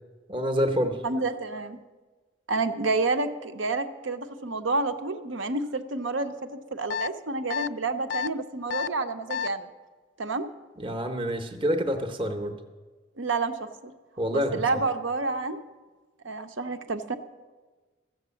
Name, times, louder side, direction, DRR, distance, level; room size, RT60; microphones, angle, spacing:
voice 1, 0.3-1.0 10.8-12.6 14.2-14.8, equal, 25° right, 7 dB, 0.8 m, -27 dB
voice 2, 1.0-1.8 2.5-9.7 10.2-10.5 13.2-13.9 14.3-15.6 16.2-17.2, right 3 dB, 75° right, 9 dB, 0.8 m, -29 dB
sound 1, 6.9-7.1 7.5-7.7 8.1-8.3 8.7-8.9 9.3-9.5, left 7 dB, 65° left, 0.3 m, -29 dB
14.0 x 7.9 x 7.0 m, 1.3 s
head